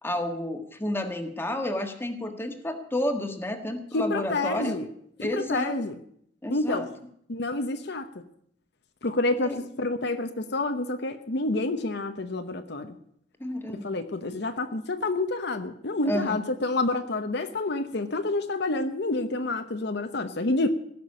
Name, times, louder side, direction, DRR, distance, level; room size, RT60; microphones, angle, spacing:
voice 1, 0.0-4.8 5.2-5.8 6.4-6.9 9.4-9.6 13.4-13.9 16.0-16.4, left 1 dB, 10° left, 5 dB, 1.5 m, -30 dB
voice 2, 3.9-4.9 5.2-6.0 6.5-6.9 7.3-8.1 9.0-13.0 13.7-20.7, left 2 dB, 65° left, 8 dB, 0.9 m, -28 dB
16.5 x 6.1 x 9.7 m, 0.69 s
head